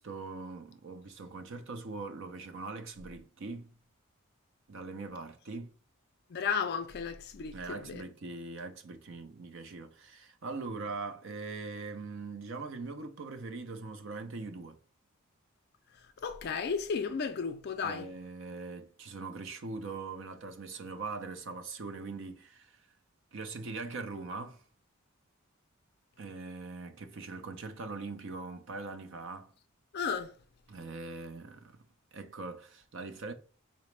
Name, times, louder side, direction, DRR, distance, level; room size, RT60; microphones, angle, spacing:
voice 1, 0.0-3.7 4.7-5.7 7.5-14.8 17.8-22.8 23.3-24.6 26.2-29.5 30.7-31.7 32.1-33.3, right 3 dB, 60° right, 0.5 m, -41 dB
voice 2, 6.3-8.0 16.2-18.1 29.9-30.3, left 6 dB, 45° left, 0.4 m, -34 dB
3.9 x 2.1 x 3.2 m
head